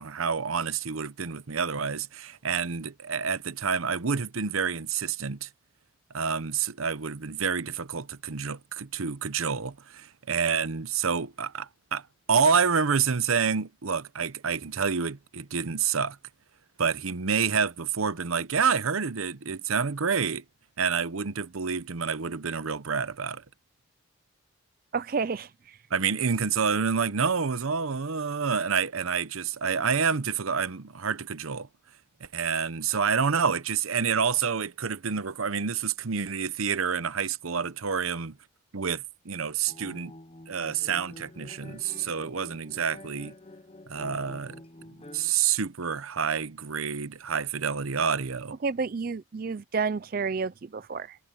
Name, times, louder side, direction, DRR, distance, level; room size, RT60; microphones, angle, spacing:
voice 1, 0.0-5.5 6.1-12.0 12.3-16.2 16.8-20.4 20.8-23.4 25.9-31.7 32.3-38.3 38.7-40.1 40.5-43.3 43.9-44.6 45.1-48.6, right 6 dB, 80° right, 0.9 m, -28 dB
voice 2, 24.9-25.8 48.6-51.2, right 5 dB, 45° right, 0.4 m, -30 dB
sound 1, 39.6-45.3, left 1 dB, 25° left, 0.7 m, -48 dB
head